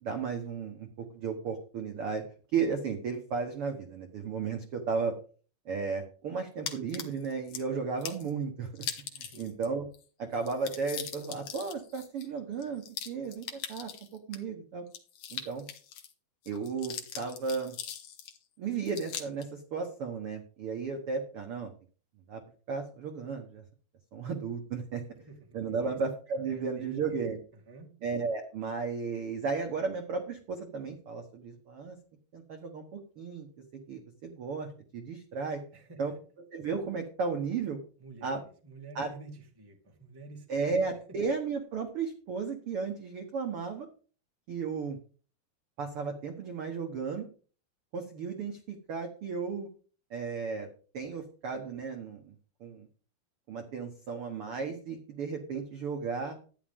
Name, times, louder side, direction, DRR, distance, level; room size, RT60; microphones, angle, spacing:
voice 1, 0.0-2.2 2.5-5.1 5.6-8.9 9.1-9.8 10.2-14.8 15.3-15.7 16.5-17.7 18.6-21.7 22.3-22.4 22.7-23.6 24.1-25.0 25.5-27.4 28.0-32.0 32.3-33.5 33.9-35.6 36.0-36.1 36.5-37.8 38.2-38.4 38.9-39.1 40.5-43.9 44.5-45.0 45.8-47.3 47.9-49.7 50.1-50.7 50.9-52.2 52.6-52.9 53.5-56.4, right 5 dB, 70° right, 4 dB, 1.3 m, -34 dB
sound 1, 6.7-7.6 8.0-8.3 8.8-9.7 9.9-10.0 10.3-14.4 14.9-16.1 16.4-18.4 18.9-19.5, left 9 dB, 60° left, 2.3 m, -41 dB
voice 2, 9.2-9.6 25.1-26.0 26.4-27.2 27.5-27.9 35.7-36.2 38.0-41.2, right 3 dB, 10° right, 1 dB, 1.1 m, -50 dB
13.0 x 10.0 x 3.6 m, 0.40 s
omnidirectional pair, 4.4 m